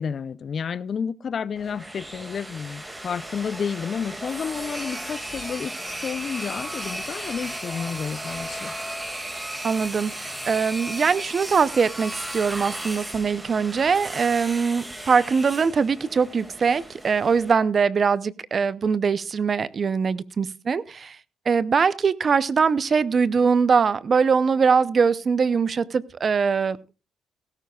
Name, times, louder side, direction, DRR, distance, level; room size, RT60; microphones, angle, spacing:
voice 1, 0.0-5.8 6.0-8.7, left 6 dB, 50° left, 0.5 m, -31 dB
sound 1, 1.6-17.5, right 1 dB, 10° right, 2.1 m, -35 dB
voice 2, 9.6-21.2 21.5-26.8, right 5 dB, 45° right, 0.6 m, -22 dB
16.5 x 14.0 x 2.3 m
cardioid pair, 90°, 0 cm